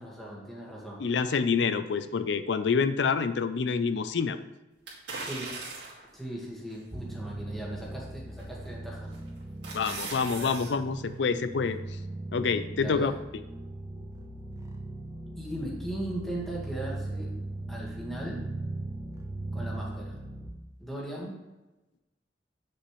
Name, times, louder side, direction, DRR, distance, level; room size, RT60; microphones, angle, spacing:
voice 1, 0.0-1.0 5.2-5.5 6.1-9.1 10.4-10.5 12.7-13.2 15.4-17.3 17.7-18.4 19.5-20.2 20.8-21.4, right 1 dB, ahead, -4 dB, 1.8 m, -38 dB
voice 2, 1.0-4.4 9.7-11.8 12.3-13.1, left 5 dB, 80° left, 12 dB, 0.5 m, -27 dB
sound 1, 4.9-6.1 6.7-6.8 8.4-8.7 9.1-10.7 11.1-11.2, right 3 dB, 80° right, 2.4 m, -39 dB
sound 2, 6.9-20.5, right 2 dB, 20° right, 0.7 m, -39 dB
8.4 x 6.3 x 3.2 m, 1.0 s
head